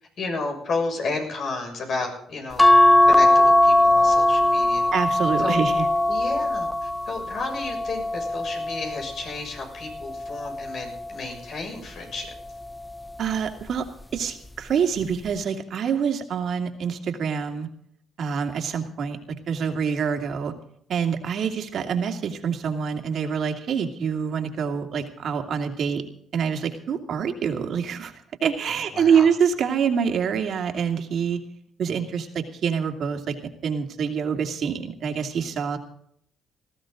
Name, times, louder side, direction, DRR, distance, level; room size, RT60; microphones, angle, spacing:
voice 1, 0.2-2.7 3.1-4.8 5.4-5.6 6.1-12.3 28.7-29.3, left 3 dB, 60° left, 3 dB, 6.5 m, -32 dB
sound 1, 2.6-9.2 9.8-11.2 12.5-12.9 13.2-13.3, left 1 dB, 10° left, 0.5 m, -20 dB
voice 2, 4.9-5.8 13.2-13.8 14.1-17.7 18.2-19.2 19.5-20.5 20.9-26.0 26.3-28.1 28.4-31.4 31.8-33.3 33.6-35.8, right 7 dB, 65° right, 4 dB, 2.6 m, -26 dB
19.5 x 15.0 x 3.9 m, 0.68 s
cardioid pair, 90°, 0 cm